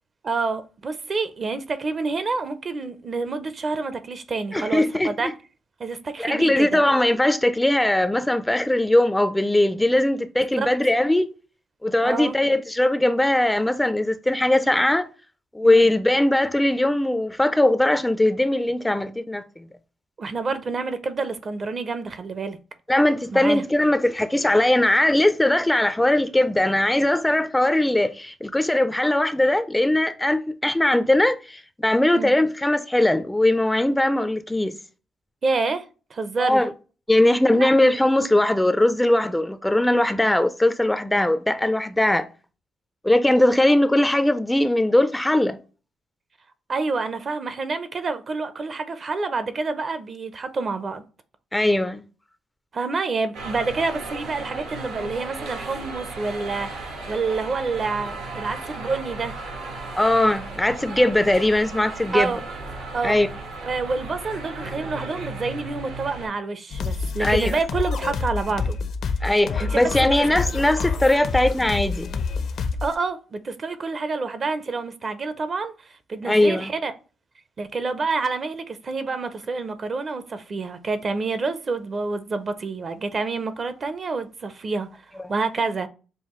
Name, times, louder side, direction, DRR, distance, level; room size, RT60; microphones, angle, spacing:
voice 1, 0.2-5.3 5.8-6.8 10.5-10.7 12.0-12.4 15.6-15.9 20.2-22.6 23.3-23.6 32.1-32.3 35.4-35.9 36.1-36.6 37.5-37.7 46.7-51.0 52.7-59.4 62.1-62.4 62.9-63.2 63.6-68.8 69.6-70.1 72.8-75.7 76.1-76.9 77.6-85.0 85.3-85.9, right 4 dB, 40° right, 0.5 m, -28 dB
voice 2, 4.5-5.3 6.2-11.3 11.8-15.1 15.5-19.6 22.9-34.7 36.4-36.7 37.1-42.2 43.0-45.6 51.5-52.0 59.9-62.3 63.0-63.3 67.2-67.6 69.2-72.1 76.2-76.7 85.2-85.3, left 1 dB, 10° left, 0.3 m, -20 dB
sound 1, 53.3-66.3, right 3 dB, 85° right, 1.2 m, -35 dB
sound 2, 66.7-72.9, left 4 dB, 65° left, 0.5 m, -27 dB
5.5 x 2.3 x 3.0 m
cardioid pair, 90°, 0 cm